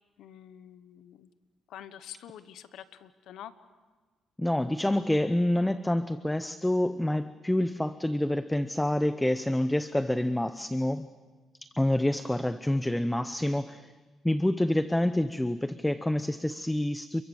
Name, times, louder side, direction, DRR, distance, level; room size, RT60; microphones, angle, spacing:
voice 1, 0.2-1.3 1.7-3.5, left 10 dB, 80° left, 13 dB, 1.2 m, -47 dB
voice 2, 4.4-11.1 11.8-13.9 14.2-17.2, left 1 dB, 10° left, 12 dB, 0.8 m, -27 dB
30.0 x 23.0 x 7.2 m, 1.3 s
cardioid pair, 90°, 0 cm